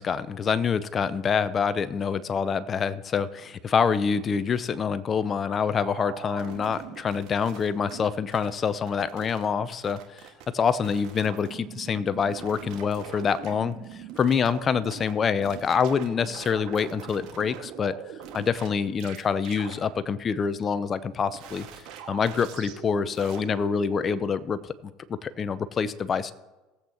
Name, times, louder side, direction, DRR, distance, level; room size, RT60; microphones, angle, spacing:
voice 1, 0.0-10.2 10.5-13.8 14.2-17.9 18.3-21.7 22.1-26.3, left 6 dB, 35° left, 16 dB, 0.6 m, -26 dB
sound 1, 5.8-8.1 8.3-9.5 9.7-10.4 10.8-15.1 15.4-18.7 19.0-19.2 19.4-19.7 21.3-24.2, right 9 dB, 60° right, 1.8 m, -42 dB
19.0 x 8.0 x 3.0 m, 1.1 s
hypercardioid pair, 75°, 0 cm